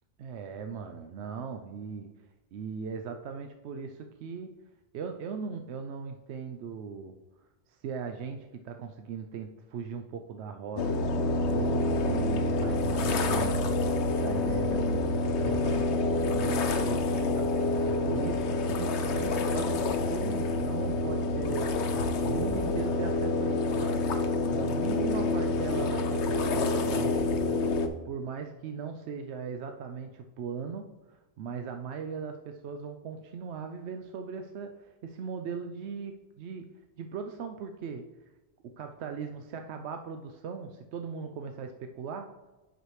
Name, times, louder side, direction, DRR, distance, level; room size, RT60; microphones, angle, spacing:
voice 1, 0.2-2.1 2.5-4.6 4.9-7.2 7.8-15.9 16.3-24.0 24.4-27.3 28.0-36.7 37.0-38.0 38.6-42.3, right 6 dB, 75° right, 5 dB, 0.8 m, -39 dB
sound 1, 10.8-27.9, left 2 dB, 75° left, 1.0 m, -27 dB
8.0 x 6.0 x 3.2 m, 1.1 s
omnidirectional pair, 1.2 m